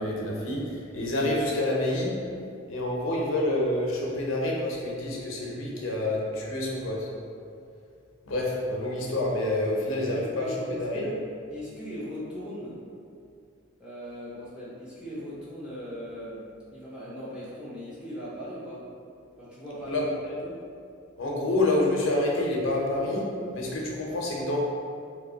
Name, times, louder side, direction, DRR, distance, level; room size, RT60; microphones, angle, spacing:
voice 1, 0.0-2.2 2.7-7.1 8.3-11.0 19.8-20.0 21.2-24.6, left 1 dB, 75° left, -3 dB, 0.6 m, -28 dB
voice 2, 9.8-11.2 11.5-12.8 13.8-16.4 16.7-18.8 19.4-20.6, equal, 5° right, -10 dB, 0.7 m, -39 dB
3.1 x 2.2 x 3.8 m, 2.4 s
head